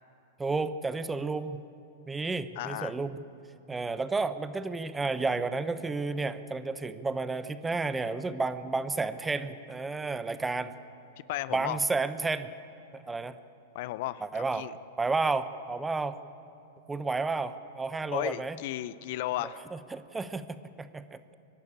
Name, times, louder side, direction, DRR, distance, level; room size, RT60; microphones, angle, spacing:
voice 1, 0.4-1.6 2.1-3.2 3.7-10.7 11.5-12.5 12.9-13.4 14.2-14.7 15.0-16.2 16.9-18.6 19.7-21.2, right 3 dB, 10° right, 12 dB, 0.9 m, -31 dB
voice 2, 2.6-2.9 11.3-11.8 13.7-14.7 18.1-19.6, left 15 dB, 60° left, 17 dB, 0.6 m, -34 dB
25.0 x 11.5 x 8.9 m, 2.8 s
hypercardioid pair, 110°, 0 cm